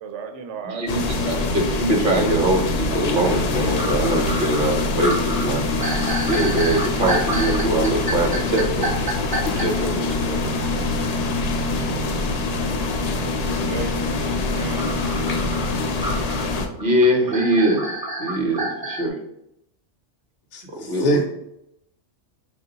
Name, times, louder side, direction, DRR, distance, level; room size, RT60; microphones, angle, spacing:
voice 1, 0.0-1.2 13.5-14.9, right 5 dB, 75° right, 5 dB, 0.9 m, -34 dB
voice 2, 0.6-5.6 6.3-8.9 9.4-10.4 16.8-17.9 18.2-19.2 20.8-21.2, right 1 dB, 50° right, 2 dB, 0.8 m, -22 dB
sound 1, 0.9-16.7, left 3 dB, 90° left, 0.3 m, -24 dB
sound 2, 3.8-9.7 14.8-19.1, right 1 dB, 30° right, 0.4 m, -29 dB
voice 3, 20.5-21.2, equal, 65° left, 1 dB, 0.7 m, -23 dB
3.6 x 2.4 x 3.8 m, 0.81 s
omnidirectional pair, 1.3 m